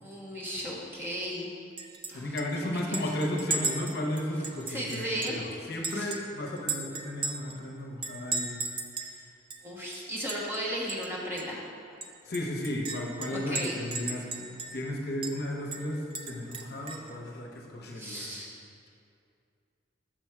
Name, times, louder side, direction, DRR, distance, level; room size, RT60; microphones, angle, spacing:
voice 1, 0.0-1.5 2.1-2.4 2.7-3.1 4.7-5.4 5.9-6.1 9.6-11.6 13.3-13.8 17.9-18.5, equal, 15° right, -5 dB, 1.1 m, -35 dB
Chink clink, 1.8-2.1 2.4-2.5 2.9-5.4 5.8-7.6 8.0-9.1 9.5-9.6 9.9-10.6 10.9-11.1 11.4-11.5 12.0-14.9 15.2-15.4 15.7-17.1, right 3 dB, 30° right, 0.4 m, -36 dB
voice 2, 2.1-8.6 12.3-18.3, left 1 dB, 60° left, 0 dB, 0.8 m, -34 dB
6.3 x 6.1 x 4.6 m, 2.4 s
head